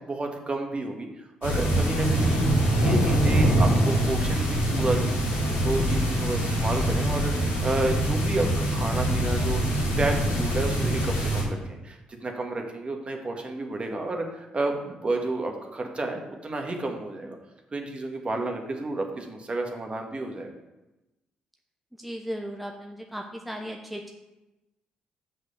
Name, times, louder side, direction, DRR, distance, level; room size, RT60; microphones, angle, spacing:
voice 1, 0.0-2.4 2.8-17.4 17.7-20.5, right 2 dB, 35° right, 3 dB, 1.6 m, -31 dB
sound 1, 1.4-11.4, right 1 dB, 85° left, 2.5 m, -24 dB
voice 2, 22.0-24.1, equal, ahead, 2 dB, 0.9 m, -36 dB
6.1 x 5.3 x 7.0 m, 1.0 s
hypercardioid pair, 50°, 3 cm